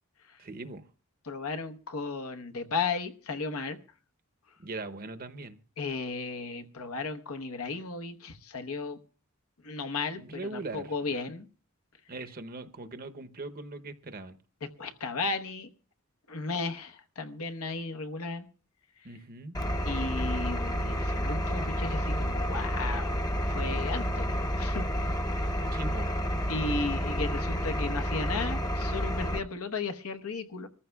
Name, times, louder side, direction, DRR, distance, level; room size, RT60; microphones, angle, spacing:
voice 1, 0.4-0.9 4.6-5.6 10.1-11.2 12.1-14.4 19.0-19.6 25.7-26.1, right 3 dB, 45° right, 0.8 m, -40 dB
voice 2, 1.2-3.8 5.8-9.0 9.6-11.5 14.8-15.7 16.3-18.4 19.8-25.6 26.5-30.7, left 4 dB, 80° left, 1.0 m, -35 dB
Engine, 19.5-29.4, equal, 20° left, 0.8 m, -30 dB
24.5 x 14.0 x 2.3 m
head